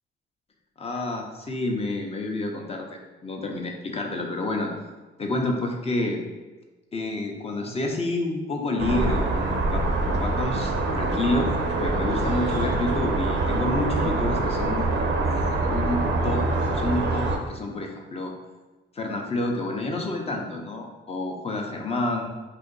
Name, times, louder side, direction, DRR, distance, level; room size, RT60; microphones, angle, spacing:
voice 1, 0.8-4.7 5.2-6.2 6.9-11.5 11.8-14.9 15.3-16.5 16.7-18.3 18.9-22.3, left 2 dB, 30° left, 2 dB, 0.6 m, -29 dB
sound 1, 8.8-17.4, right 2 dB, 65° right, 0.5 m, -25 dB
2.6 x 2.5 x 3.8 m, 1.2 s
cardioid pair, 90°, 20 cm